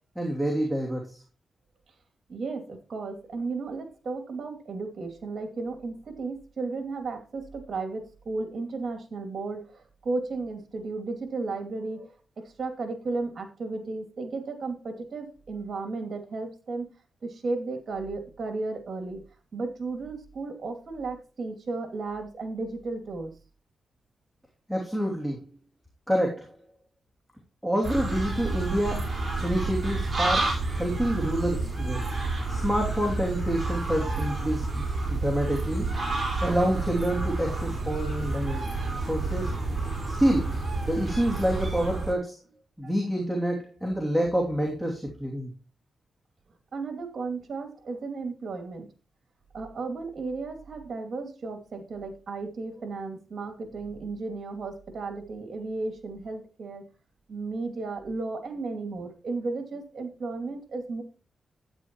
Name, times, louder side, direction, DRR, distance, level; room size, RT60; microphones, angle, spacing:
voice 1, 0.1-1.2 24.7-25.4 26.1-26.5 27.6-32.0 32.5-35.9 36.1-39.5 40.2-40.5 40.8-42.4 42.8-45.5, equal, ahead, -2 dB, 2.9 m, -28 dB
voice 2, 2.3-16.9 17.2-19.2 19.5-23.3 46.7-48.9 49.5-56.8 57.3-61.0, right 3 dB, 60° right, 6 dB, 2.7 m, -34 dB
sound 1, 27.8-42.1, right 3 dB, 30° right, 5.3 m, -30 dB
12.5 x 9.5 x 3.1 m, 0.34 s
cardioid pair, 80°, 0 cm